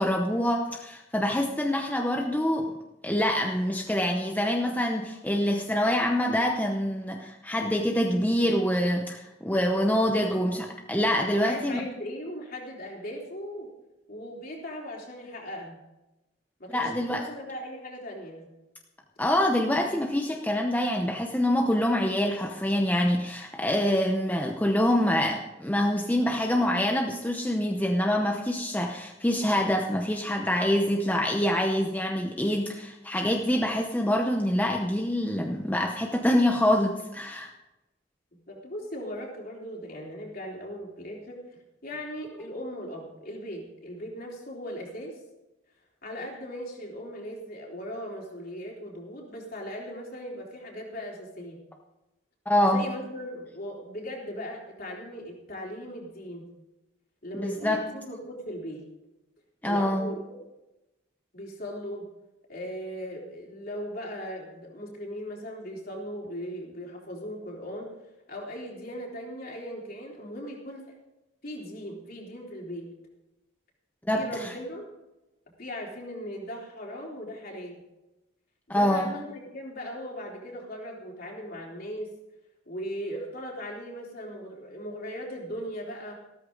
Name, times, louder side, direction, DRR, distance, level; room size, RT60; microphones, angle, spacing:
voice 1, 0.0-2.7 3.0-11.8 16.7-17.2 19.2-37.5 52.5-52.8 57.3-57.8 59.6-60.1 74.1-74.5 78.7-79.1, left 1 dB, 10° left, 2 dB, 0.8 m, -25 dB
voice 2, 9.7-10.4 11.3-13.7 14.1-15.8 16.6-18.5 38.3-41.4 41.8-45.2 46.0-51.6 52.7-56.6 57.2-58.8 59.6-60.4 61.3-62.1 62.5-67.9 68.3-70.9 71.4-72.9 74.1-74.9 75.6-77.8 78.7-82.1 82.7-86.1, equal, 50° left, -2 dB, 3.6 m, -38 dB
14.5 x 13.5 x 3.9 m, 0.99 s
head